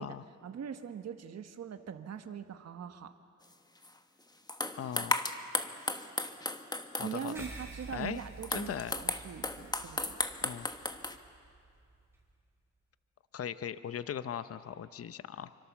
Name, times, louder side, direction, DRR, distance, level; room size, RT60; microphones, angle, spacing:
voice 1, 0.4-3.1 7.0-10.2, right 8 dB, 55° right, 7 dB, 1.3 m, -42 dB
sound 1, 3.8-3.9 4.5-7.4 8.2-11.2, left 2 dB, 15° left, 1.3 m, -35 dB
voice 2, 4.8-5.2 6.9-7.3 7.9-8.2 8.5-8.9 10.4-10.7 13.3-15.5, left 9 dB, 50° left, 13 dB, 0.8 m, -39 dB
sound 2, 7.3-12.2, right 3 dB, 10° right, 5.6 m, -50 dB
28.0 x 24.5 x 7.3 m, 2.4 s
cardioid pair, 95°, 30 cm